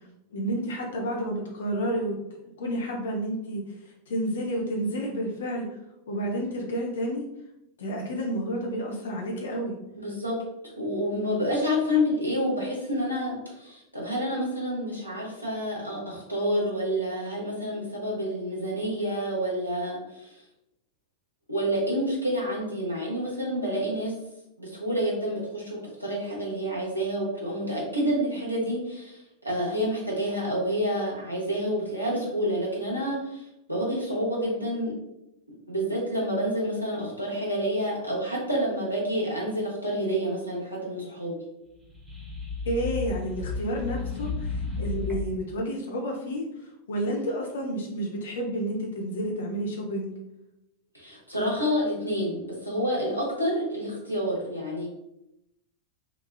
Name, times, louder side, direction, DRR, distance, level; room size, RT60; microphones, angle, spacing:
voice 1, 0.3-2.2 2.6-3.6 4.1-5.7 6.1-7.3 7.8-9.8 42.7-46.4 46.9-50.2, equal, 60° left, 0 dB, 0.5 m, -30 dB
voice 2, 10.0-10.4 10.8-20.3 21.5-24.1 24.6-35.0 35.7-41.4 50.9-54.9, equal, 90° left, -4 dB, 0.8 m, -28 dB
sound 1, 41.8-45.5, left 3 dB, 10° right, 0.7 m, -33 dB
3.0 x 2.3 x 2.3 m, 0.86 s
figure-of-eight pair, 90°, 0 cm